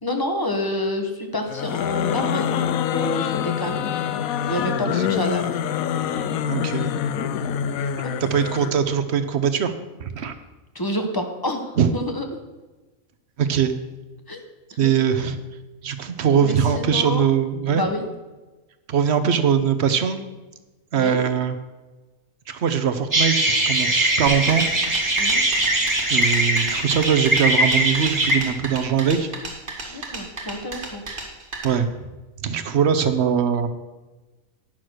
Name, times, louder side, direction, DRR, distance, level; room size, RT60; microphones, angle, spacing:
voice 1, 0.0-3.9 4.5-5.5 8.0-8.1 10.2-10.3 10.7-12.3 14.3-14.4 14.7-14.9 16.4-17.3 17.7-18.0 20.9-21.3 25.2-25.4 29.9-31.0, left 1 dB, 15° left, 4 dB, 1.0 m, -28 dB
sound 1, 1.5-8.8, left 9 dB, 75° left, 1.0 m, -25 dB
voice 2, 6.5-6.9 8.2-9.7 10.0-10.3 11.8-11.9 13.4-13.7 14.8-15.4 15.8-17.8 18.9-20.2 20.9-21.5 22.5-24.7 26.1-29.3 29.8-30.0 31.6-31.9 32.4-33.7, right 7 dB, 55° right, 10 dB, 0.9 m, -21 dB
sound 2, 23.1-28.4, right 1 dB, 15° right, 1.4 m, -21 dB
sound 3, 24.3-31.6, right 3 dB, 40° right, 1.5 m, -33 dB
10.5 x 6.2 x 6.3 m, 1.2 s
omnidirectional pair, 1.5 m